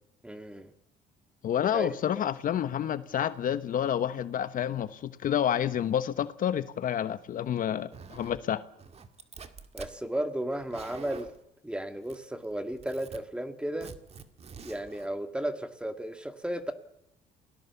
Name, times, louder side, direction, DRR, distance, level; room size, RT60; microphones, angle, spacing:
voice 1, 0.2-0.7 1.6-2.0 9.7-11.3 11.6-13.9 14.6-16.7, right 1 dB, 5° right, 2.1 m, -34 dB
voice 2, 1.4-8.6, left 10 dB, 55° left, 1.1 m, -29 dB
Zipper (clothing), 7.9-8.4 8.8-10.0 10.5-11.4 12.1-12.5 12.7-13.2 13.8-15.1, right 6 dB, 40° right, 2.0 m, -46 dB
28.0 x 18.5 x 7.1 m
cardioid pair, 110°, 17 cm